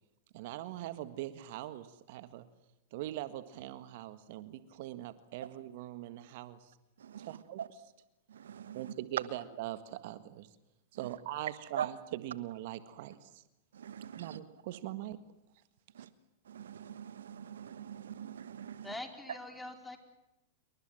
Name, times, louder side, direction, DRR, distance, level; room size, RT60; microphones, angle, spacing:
voice 1, 0.3-2.4 2.9-6.7 7.2-7.6 8.7-10.5 10.9-11.9 12.2-13.4 14.1-15.2 16.0-16.1, right 14 dB, 60° right, 12 dB, 1.7 m, -42 dB
voice 2, 7.0-7.7 8.3-9.3 10.0-10.1 10.9-11.9 13.0-13.2 13.7-14.4 15.9-16.1 16.4-19.0 19.3-19.4, right 9 dB, 80° right, 15 dB, 1.3 m, -42 dB
voice 3, 18.8-20.0, left 2 dB, 5° left, 6 dB, 4.5 m, -43 dB
28.0 x 24.0 x 7.7 m, 0.93 s
hypercardioid pair, 105°, 0 cm